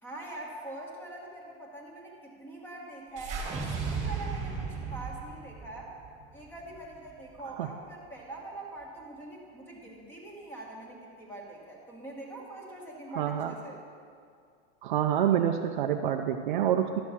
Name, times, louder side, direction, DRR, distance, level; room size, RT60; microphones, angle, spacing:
voice 1, 0.0-5.9 6.3-13.8, right 2 dB, 5° left, -2 dB, 1.2 m, -43 dB
sound 1, 3.2-7.5, right 5 dB, 20° right, 1.6 m, -36 dB
voice 2, 13.2-13.5 14.8-17.0, right 10 dB, 45° right, 6 dB, 0.4 m, -27 dB
12.0 x 6.3 x 5.7 m, 2.3 s
supercardioid pair, 170°, 34 cm